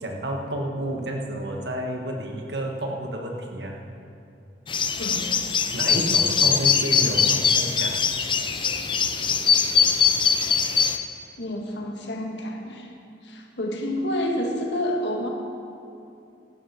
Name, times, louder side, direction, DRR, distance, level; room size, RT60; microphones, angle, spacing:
voice 1, 0.0-3.8 5.7-8.1, right 1 dB, 70° right, 2 dB, 1.6 m, -30 dB
sound 1, 4.7-11.0, left 6 dB, 30° left, 0.6 m, -22 dB
voice 2, 5.0-5.3 11.4-12.9 13.2-15.3, left 1 dB, 90° left, 1 dB, 1.8 m, -29 dB
15.0 x 12.0 x 4.4 m, 2.6 s
head